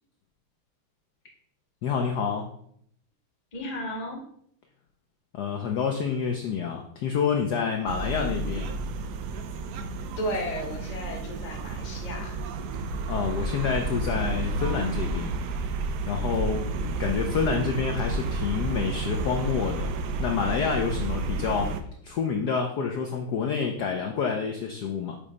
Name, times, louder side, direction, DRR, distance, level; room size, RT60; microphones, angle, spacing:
voice 1, 1.8-2.5 5.3-8.7 13.1-15.3 16.1-16.7 17.0-19.9 20.2-21.7 22.0-25.2, left 6 dB, 70° left, 3 dB, 1.0 m, -28 dB
voice 2, 3.5-4.2 10.2-12.3 16.7-17.0, equal, 25° left, 0 dB, 0.8 m, -34 dB
sound 1, 7.9-21.8, right 3 dB, 75° right, 0.9 m, -31 dB
6.9 x 3.2 x 4.9 m, 0.67 s
omnidirectional pair, 2.3 m